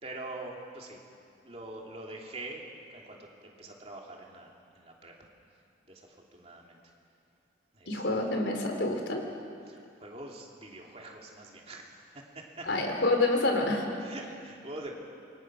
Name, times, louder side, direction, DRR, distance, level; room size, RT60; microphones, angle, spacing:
voice 1, 0.0-1.0 1.4-2.6 2.9-5.3 5.9-6.8 7.7-8.0 9.7-12.7 14.0-14.9, right 2 dB, 35° right, -1 dB, 2.9 m, -44 dB
voice 2, 7.9-9.2 12.7-13.9, left 2 dB, 75° left, 2 dB, 3.7 m, -27 dB
27.5 x 23.5 x 6.3 m, 2.5 s
head